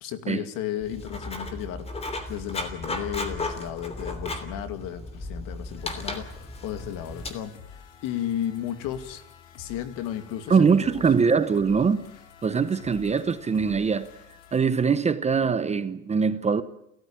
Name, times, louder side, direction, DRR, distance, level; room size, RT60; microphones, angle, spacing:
voice 1, 0.0-9.2 9.6-10.7, left 11 dB, 60° left, 2.6 m, -34 dB
Writing, 0.8-7.3, left 2 dB, 15° left, 3.1 m, -35 dB
sound 1, 5.8-14.6, left 7 dB, 80° left, 3.7 m, -49 dB
voice 2, 10.5-12.0 12.4-14.1 14.5-16.6, right 5 dB, 20° right, 0.9 m, -22 dB
29.5 x 14.5 x 8.8 m
cardioid pair, 140°, 38 cm